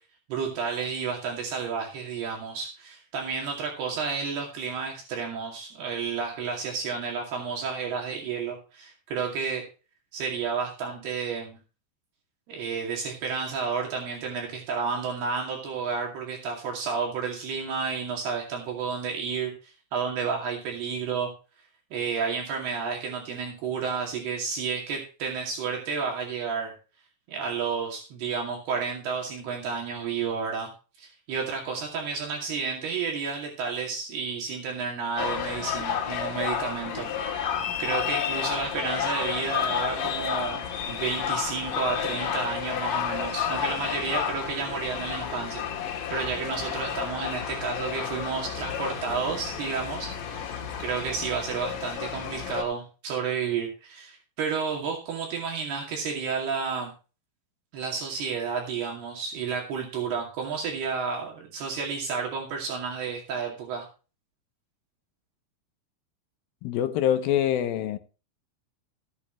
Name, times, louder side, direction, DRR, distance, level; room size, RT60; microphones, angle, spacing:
voice 1, 0.3-9.7 10.1-11.6 12.5-21.3 21.9-26.7 27.3-30.7 31.0-56.9 57.7-63.9, right 5 dB, 70° right, 4.3 m, -31 dB
sound 1, 35.2-52.6, left 8 dB, 60° left, 3.0 m, -31 dB
voice 2, 66.6-68.0, left 10 dB, 75° left, 2.4 m, -25 dB
16.0 x 8.7 x 3.0 m
omnidirectional pair, 4.8 m